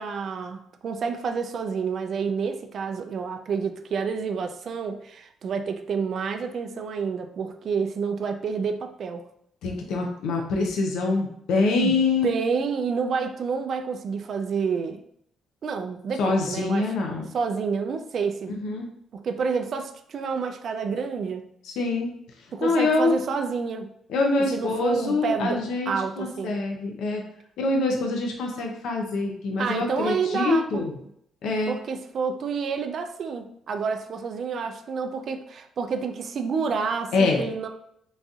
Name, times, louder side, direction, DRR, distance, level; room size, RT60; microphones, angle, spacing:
voice 1, 0.0-9.2 11.8-11.9 12.2-15.0 15.6-16.9 17.3-18.5 19.1-21.5 22.5-23.9 24.5-26.6 29.6-30.8 31.7-37.7, right 5 dB, 60° right, 6 dB, 0.3 m, -29 dB
voice 2, 9.6-12.3 16.2-17.2 18.5-18.9 21.6-22.1 22.6-23.2 24.1-27.2 27.6-30.9 31.4-31.8 37.1-37.4, left 3 dB, 85° left, 1 dB, 0.5 m, -25 dB
3.9 x 2.6 x 2.4 m, 0.71 s
cardioid pair, 90°, 0 cm